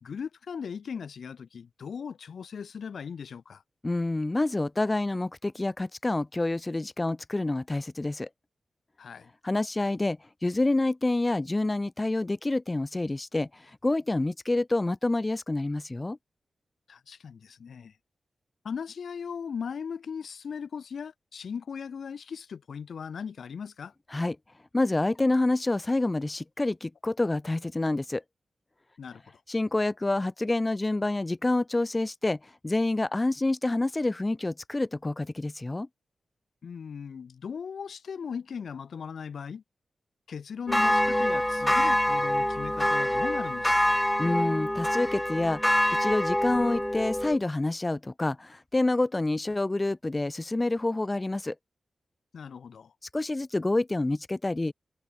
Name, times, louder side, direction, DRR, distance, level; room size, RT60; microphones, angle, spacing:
voice 1, 0.0-3.6 9.0-9.3 16.9-18.0 18.6-23.9 29.0-29.4 36.6-39.6 40.3-44.0 52.3-52.9, left 6 dB, 75° left, 1.5 m, -38 dB
voice 2, 3.8-8.3 9.4-16.2 24.1-24.4 24.7-28.2 29.5-35.9 44.2-45.6 46.0-51.6 53.1-54.7, left 2 dB, 25° left, 1.8 m, -27 dB
sound 1, 40.7-47.4, left 1 dB, 10° left, 1.5 m, -25 dB
cardioid pair, 55°, 0 cm